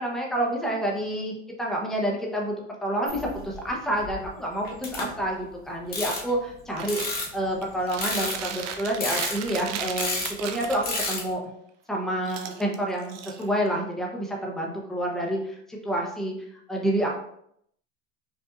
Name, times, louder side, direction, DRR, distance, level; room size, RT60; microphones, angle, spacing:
voice 1, 0.0-2.6 2.8-7.0 7.3-10.8 11.1-11.4 11.9-16.3 16.7-17.2, right 1 dB, ahead, -2 dB, 0.8 m, -28 dB
sound 1, 3.1-3.7 4.0-4.3 4.6-5.4 5.9-6.3 6.8-7.6 8.0-8.5 9.0-9.7 10.0-10.3 10.8-11.3, left 2 dB, 25° left, 1.3 m, -31 dB
Chewing mastication, 6.8-7.2 7.6-11.2 12.2-13.8, right 8 dB, 45° right, 0.5 m, -36 dB
5.3 x 2.6 x 2.5 m, 0.71 s
supercardioid pair, 110°, 38 cm